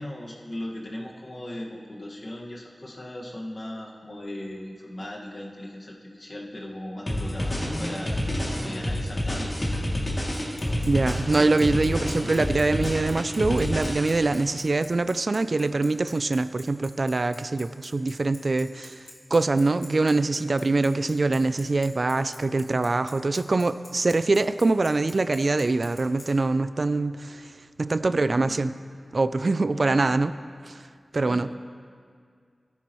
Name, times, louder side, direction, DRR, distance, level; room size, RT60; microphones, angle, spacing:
voice 1, 0.0-10.0 28.0-28.6 29.7-30.0 31.2-31.6, left 1 dB, 55° left, -1 dB, 1.6 m, -38 dB
sound 1, 7.1-14.4, left 1 dB, 35° left, 2.5 m, -28 dB
Bicycle, 10.3-26.3, left 2 dB, 90° left, 2.0 m, -46 dB
voice 2, 10.9-19.0 19.3-27.5 27.8-28.7 29.1-30.3 30.6-30.8 31.1-31.5, right 3 dB, 60° right, 13 dB, 0.3 m, -24 dB
14.5 x 9.8 x 3.1 m, 2.1 s
cardioid pair, 45°, 0 cm